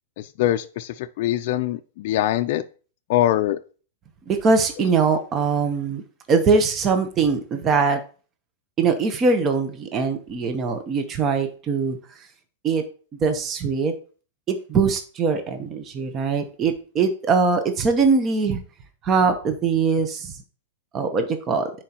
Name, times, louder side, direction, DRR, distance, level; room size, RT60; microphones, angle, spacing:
voice 1, 0.4-2.6 3.1-3.6, left 13 dB, 50° left, 7 dB, 0.4 m, -23 dB
voice 2, 4.3-6.0 6.3-8.0 8.8-12.0 12.6-12.8 13.2-13.9 14.5-18.6 19.0-20.3 20.9-21.7, right 4 dB, 25° right, 7 dB, 0.8 m, -22 dB
10.0 x 4.5 x 2.9 m, 0.37 s
supercardioid pair, 150°, 0 cm